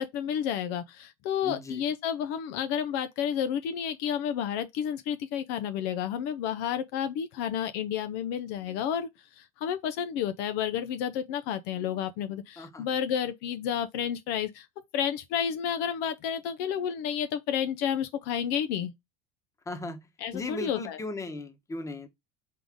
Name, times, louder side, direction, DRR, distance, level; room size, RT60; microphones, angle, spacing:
voice 1, 0.0-14.7 14.9-18.9 20.2-21.0, left 9 dB, 65° left, 0.5 m, -31 dB
voice 2, 1.4-1.8 12.6-12.9 19.7-20.0 20.3-22.1, left 2 dB, 15° left, 1.0 m, -37 dB
3.8 x 3.7 x 3.5 m
supercardioid pair, 105°, 18 cm